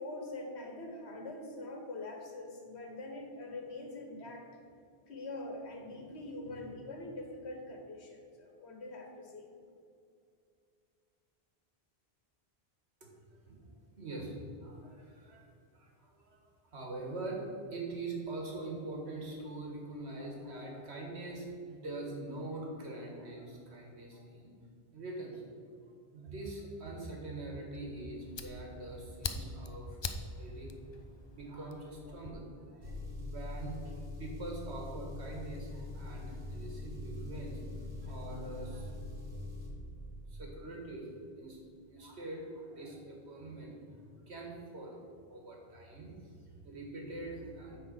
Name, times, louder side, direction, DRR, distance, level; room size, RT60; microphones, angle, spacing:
voice 1, 0.0-4.5 5.1-9.5, left 2 dB, 90° left, 2 dB, 1.6 m, -44 dB
voice 2, 14.0-15.5 15.7-17.4 17.7-24.5 24.9-25.4 25.8-30.1 30.4-30.7 31.3-33.9 34.2-39.2 39.7-41.1 41.4-41.6 41.9-45.0 45.3-47.8, right 2 dB, 80° right, 0 dB, 1.9 m, -43 dB
Fire, 27.7-32.3, left 4 dB, 45° left, 0.3 m, -43 dB
Engine, 32.8-39.7, left 2 dB, 50° right, 2.3 m, -43 dB
9.2 x 4.1 x 6.5 m, 2.4 s
omnidirectional pair, 1.1 m